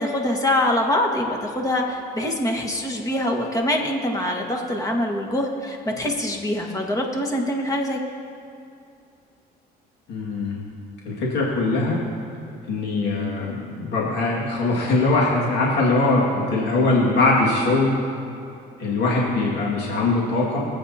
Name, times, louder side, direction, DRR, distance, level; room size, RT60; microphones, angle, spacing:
voice 1, 0.0-8.0, left 1 dB, 20° left, 1 dB, 1.7 m, -24 dB
voice 2, 10.1-10.6 11.1-12.0 12.7-18.0 18.8-20.7, left 2 dB, 85° left, -4 dB, 2.2 m, -21 dB
24.5 x 8.4 x 2.9 m, 2.6 s
cardioid pair, 110°, 17 cm